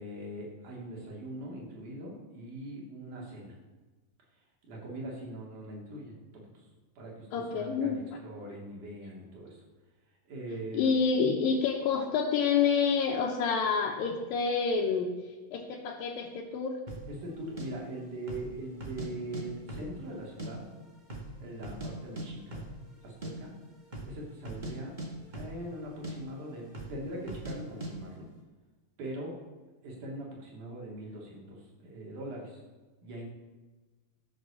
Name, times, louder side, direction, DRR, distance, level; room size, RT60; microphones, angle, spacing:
voice 1, 0.0-3.5 4.6-6.1 6.5-6.7 7.0-9.6 10.3-10.9 17.1-20.7 21.4-22.6 23.0-23.5 24.0-25.0 25.3-28.3 29.0-29.4 29.8-32.6 33.0-33.2, right 1 dB, 65° right, -2 dB, 4.0 m, -41 dB
voice 2, 7.3-8.0 10.7-15.1 15.5-16.8, left 5 dB, 85° left, -2 dB, 2.7 m, -28 dB
sound 1, 16.9-17.1 17.6-17.7 18.2-18.5 18.8-19.4 19.7-20.5 20.8-20.9 21.1-21.9 22.2-22.3 22.5-22.7 23.0-23.3 23.8-24.1 24.4-24.7 25.0-25.8 26.0-26.2 26.7-27.0 27.3-27.6 27.8-27.9, right 1 dB, 40° right, 0.6 m, -39 dB
13.0 x 6.7 x 6.9 m, 1.3 s
omnidirectional pair, 3.9 m